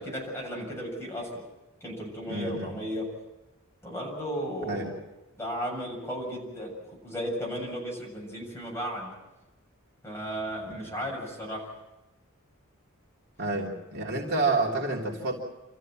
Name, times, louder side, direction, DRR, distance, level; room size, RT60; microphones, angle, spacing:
voice 1, 0.0-1.4 1.8-3.1 3.8-4.9 5.4-6.7 7.0-9.1 10.0-11.7, equal, 15° left, -2 dB, 7.3 m, -34 dB
voice 2, 2.3-2.7 4.6-4.9 13.4-15.4, right 3 dB, 50° right, -2 dB, 3.3 m, -29 dB
27.5 x 14.5 x 7.5 m, 1.0 s
head